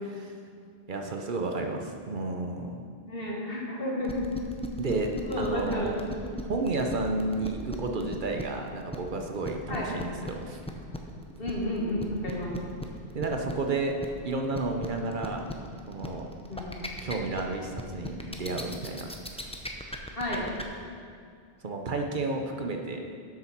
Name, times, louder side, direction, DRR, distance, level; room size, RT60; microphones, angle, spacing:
voice 1, 0.9-2.8 4.8-6.0 6.5-10.6 13.1-14.0 14.2-15.5 15.9-16.3 17.0-19.1 21.6-23.1, right 3 dB, 55° right, 3 dB, 0.9 m, -31 dB
voice 2, 3.0-4.2 5.2-6.1 9.7-9.9 11.4-12.5 16.5-16.9 20.2-20.5, left 1 dB, 65° left, -3 dB, 2.0 m, -31 dB
sound 1, 4.0-20.6, left 1 dB, 5° left, 0.6 m, -37 dB
8.0 x 7.0 x 5.9 m, 2.3 s
omnidirectional pair, 1.0 m